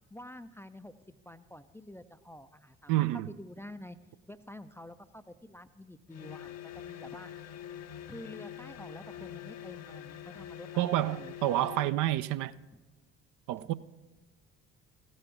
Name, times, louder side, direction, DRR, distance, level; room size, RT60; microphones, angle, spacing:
voice 1, 0.1-4.0 4.3-7.3 8.1-11.3 12.7-12.8, left 1 dB, 5° left, 0.4 m, -48 dB
voice 2, 2.9-3.3 10.8-12.5 13.5-13.7, right 15 dB, 55° right, 0.5 m, -29 dB
sound 1, 6.1-12.0, left 10 dB, 40° left, 0.7 m, -45 dB
15.5 x 5.5 x 5.8 m
figure-of-eight pair, 45°, 39 cm